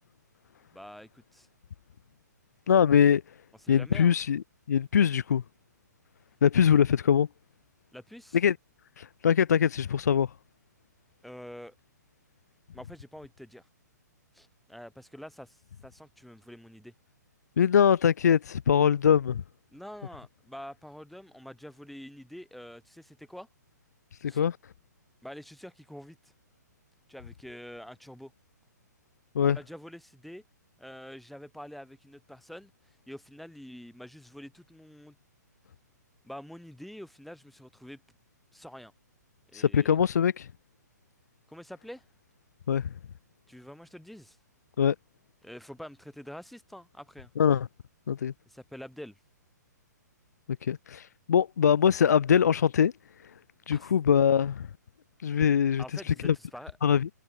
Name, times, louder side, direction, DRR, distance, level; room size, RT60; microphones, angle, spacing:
voice 1, 0.7-1.5 3.6-4.1 7.9-8.4 11.2-11.7 12.7-13.6 14.3-16.9 19.7-23.5 24.3-24.4 25.2-26.3 27.1-28.3 29.4-30.4 30.8-32.7 33.1-35.1 36.2-38.0 38.5-38.9 39.5-40.0 41.5-42.0 43.5-44.4 45.4-47.3 48.5-49.1 53.7-53.9 55.8-56.8, equal, ahead, 1.5 m, -46 dB
voice 2, 2.7-3.2 3.7-5.4 6.4-7.3 8.3-8.6 9.0-10.3 17.6-19.4 24.2-24.6 29.3-29.6 39.5-40.5 42.7-42.9 44.8-45.0 47.4-47.7 48.1-48.3 50.6-52.9 53.7-54.7 55.2-56.4 56.8-57.1, left 8 dB, 65° left, 0.5 m, -23 dB
figure-of-eight pair, 125°, 10 cm